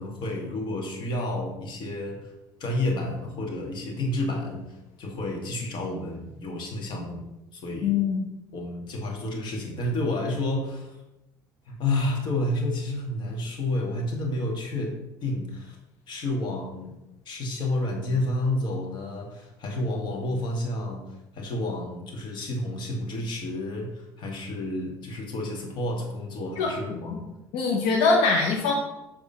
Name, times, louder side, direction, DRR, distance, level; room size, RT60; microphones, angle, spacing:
voice 1, 0.0-2.3 2.6-7.2 7.5-8.0 8.5-11.0 11.7-15.8 16.1-17.0 17.3-21.0 21.3-27.2, left 1 dB, 55° left, 1 dB, 1.9 m, -30 dB
voice 2, 7.8-8.2 26.6-26.7 27.1-27.2 27.5-28.7, left 4 dB, 70° left, 0 dB, 1.1 m, -22 dB
8.3 x 3.7 x 5.6 m, 0.94 s
hypercardioid pair, 70°, 9 cm